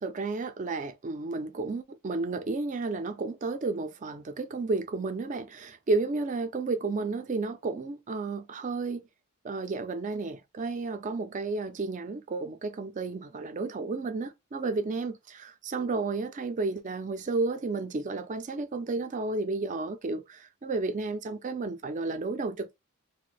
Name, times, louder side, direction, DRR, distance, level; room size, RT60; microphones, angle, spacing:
voice 1, 0.0-9.0 9.4-22.8, right 3 dB, 35° right, 0.4 m, -32 dB
2.6 x 2.1 x 3.9 m
head